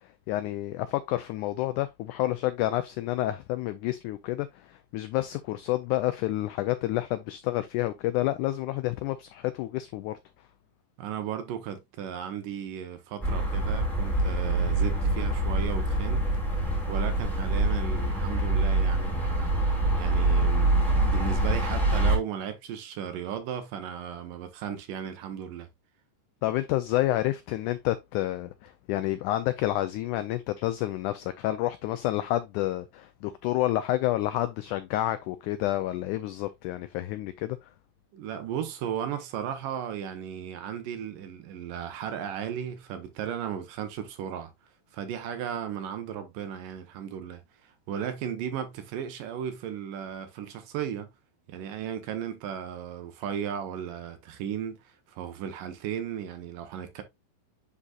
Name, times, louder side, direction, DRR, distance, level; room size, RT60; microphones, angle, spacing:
voice 1, 0.3-10.2 26.4-37.7, left 15 dB, 85° left, 1.7 m, -29 dB
voice 2, 11.0-25.7 38.1-44.5 44.9-51.1 51.5-57.0, right 9 dB, 75° right, 2.5 m, -35 dB
sound 1, 13.2-22.2, right 2 dB, ahead, 1.7 m, -25 dB
9.9 x 4.1 x 2.4 m
omnidirectional pair, 4.0 m